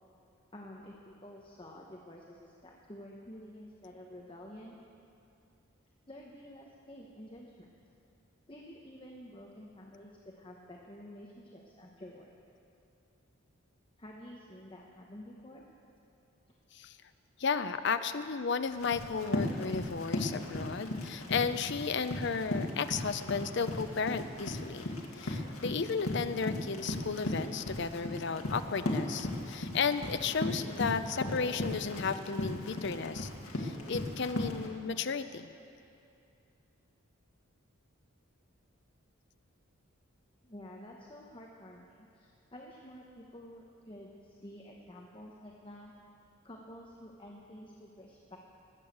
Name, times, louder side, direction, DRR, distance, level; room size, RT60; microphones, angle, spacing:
voice 1, 0.5-4.8 6.1-7.7 8.5-12.3 14.0-15.6 40.4-45.9 46.4-48.4, left 1 dB, 25° left, -1 dB, 0.9 m, -50 dB
voice 2, 17.4-33.3 33.6-35.5, left 5 dB, 50° left, 11 dB, 0.5 m, -34 dB
Run, 18.7-34.7, left 1 dB, 75° left, 1.8 m, -37 dB
19.5 x 7.1 x 7.9 m, 2.7 s
head